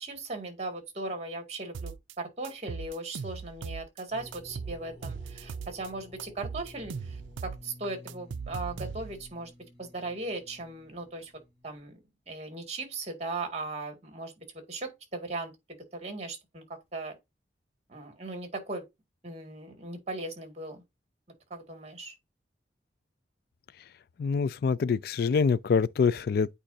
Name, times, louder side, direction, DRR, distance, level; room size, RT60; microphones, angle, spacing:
voice 1, 0.0-9.5 9.8-11.3 11.6-12.0 12.3-17.2 17.9-18.8 19.2-20.8 21.5-22.1, right 2 dB, 35° right, 2.1 m, -38 dB
sound 1, 1.7-2.1 2.4-4.0 4.3-5.9 6.2-9.3, right 6 dB, 85° right, 0.4 m, -39 dB
sound 2, 4.1-11.8, left 1 dB, 30° left, 1.6 m, -51 dB
voice 2, 24.2-26.5, left 5 dB, 55° left, 0.3 m, -25 dB
8.8 x 4.9 x 2.7 m
head